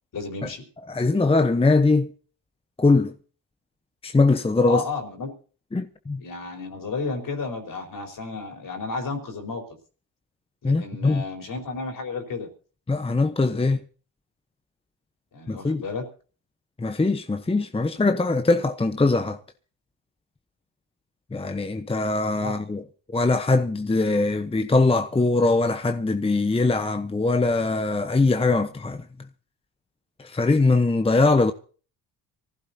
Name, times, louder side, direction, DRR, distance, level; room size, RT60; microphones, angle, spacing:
voice 1, 0.1-0.6 4.7-5.3 6.2-9.6 10.6-12.5 15.3-16.1 22.4-22.6, left 4 dB, 55° left, 4.5 m, -32 dB
voice 2, 0.9-2.1 2.8-3.1 4.0-4.8 5.7-6.2 10.6-11.2 12.9-13.8 15.5-15.8 16.8-19.4 21.3-22.8 23.1-29.0 30.2-31.5, left 3 dB, 15° left, 1.0 m, -21 dB
24.5 x 15.5 x 2.8 m
cardioid pair, 85°, 40 cm